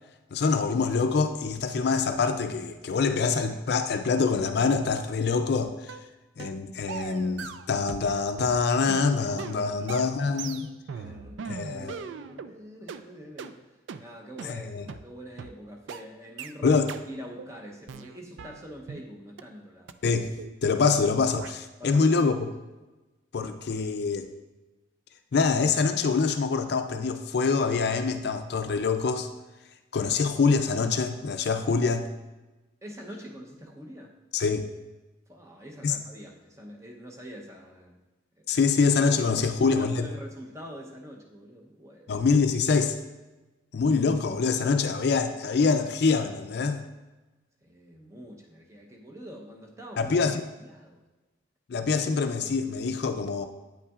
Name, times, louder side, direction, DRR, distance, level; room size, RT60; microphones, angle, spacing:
voice 1, 0.3-6.0 6.4-10.7 11.4-12.0 14.4-14.9 16.6-16.9 20.0-20.3 20.6-22.3 23.3-24.3 25.3-29.3 29.9-32.1 34.3-34.7 35.8-36.0 38.5-40.1 42.1-43.0 43.7-46.8 50.0-50.5 51.7-53.5, left 4 dB, 55° left, 8 dB, 0.4 m, -25 dB
sound 1, 5.9-6.1 6.4-6.6 6.9-8.1 8.4-12.5 12.9-13.0 13.4-13.5 13.9-14.0 14.4-14.5 14.9-15.0 15.4-15.5 15.9-16.0 16.4-16.5 16.9-17.0 17.4-17.5 17.9-19.1 19.4-19.5 19.9-20.0 20.4-20.6 20.9-21.0 21.4-21.5, right 6 dB, 75° right, 0.3 m, -39 dB
voice 2, 9.5-13.7 14.0-16.8 17.1-20.0 21.8-22.2 32.8-34.1 35.3-38.0 39.3-42.1 47.6-50.3 50.6-51.0, equal, 15° right, 0 dB, 0.7 m, -45 dB
8.8 x 5.6 x 2.4 m, 1.1 s
head